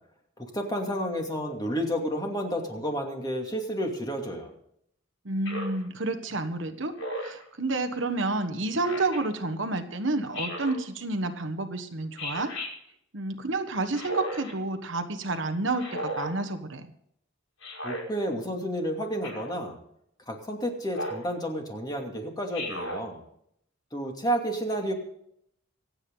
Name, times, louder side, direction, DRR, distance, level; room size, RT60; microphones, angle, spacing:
voice 1, 0.4-4.5 17.8-19.8 20.3-23.2 23.9-24.9, equal, 20° left, 2 dB, 2.6 m, -31 dB
voice 2, 5.2-6.9 7.2-12.5 13.1-16.8, right 2 dB, 65° right, 8 dB, 1.3 m, -30 dB
Speech synthesizer, 5.4-5.8 7.0-7.4 8.8-9.2 10.3-10.8 12.2-12.7 13.9-14.5 15.8-16.3 17.6-18.0 19.2-19.6 20.9-21.3 22.5-23.0, equal, 75° left, 5.8 m, -35 dB
26.0 x 8.9 x 4.0 m, 0.72 s
head